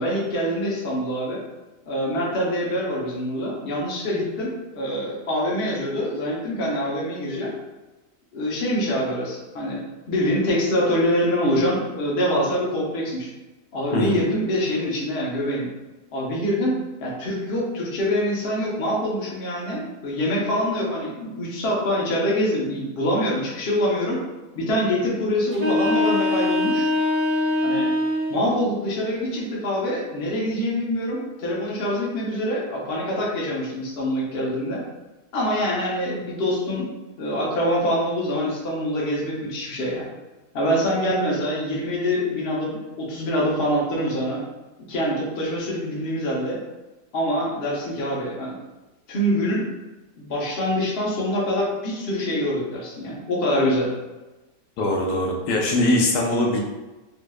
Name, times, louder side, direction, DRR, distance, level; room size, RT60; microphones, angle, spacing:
voice 1, 0.0-1.4 1.9-7.5 8.3-13.3 13.7-15.7 16.1-24.2 24.5-26.9 27.6-27.9 28.3-34.8 35.3-36.9 37.2-40.1 40.5-44.4 44.9-46.6 47.1-48.5 49.1-49.7 50.2-53.9, equal, 50° left, -4 dB, 0.8 m, -25 dB
sound 1, 25.5-28.5, left 2 dB, 40° right, 1.2 m, -22 dB
voice 2, 54.8-56.6, left 1 dB, 80° left, -1 dB, 1.2 m, -21 dB
3.4 x 2.7 x 2.3 m, 1.1 s
omnidirectional pair, 1.8 m